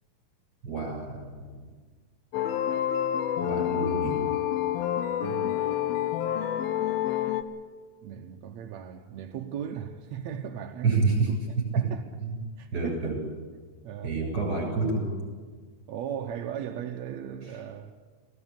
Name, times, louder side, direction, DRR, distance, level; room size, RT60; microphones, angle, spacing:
voice 1, 0.6-1.5 3.4-4.3 10.8-11.3 11.6-11.8 12.2-12.4 12.7-13.2 14.0-15.1, right 4 dB, 25° right, 8.1 m, -28 dB
sound 1, 2.3-7.4, left 11 dB, 80° left, 2.7 m, -28 dB
voice 2, 5.2-6.2 8.0-11.1 11.7-12.0 12.6-13.2 13.8-14.1 15.9-17.9, right 9 dB, 70° right, 1.7 m, -37 dB
22.0 x 17.0 x 9.0 m
omnidirectional pair, 4.2 m